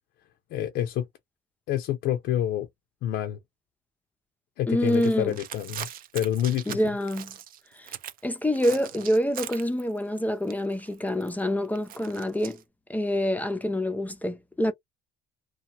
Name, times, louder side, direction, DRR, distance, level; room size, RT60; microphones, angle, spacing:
voice 1, 0.5-1.1 1.7-2.7 3.0-3.4 4.6-5.9 6.1-6.8, left 11 dB, 75° left, 0.5 m, -27 dB
voice 2, 4.7-5.4 6.7-7.3 7.8-7.9 8.2-12.6 12.9-14.7, left 1 dB, 10° left, 0.5 m, -26 dB
sound 1, 4.8-8.2 8.5-10.2 10.4-12.6, right 11 dB, 60° right, 0.5 m, -41 dB
2.8 x 2.2 x 2.7 m
cardioid pair, 110°, 17 cm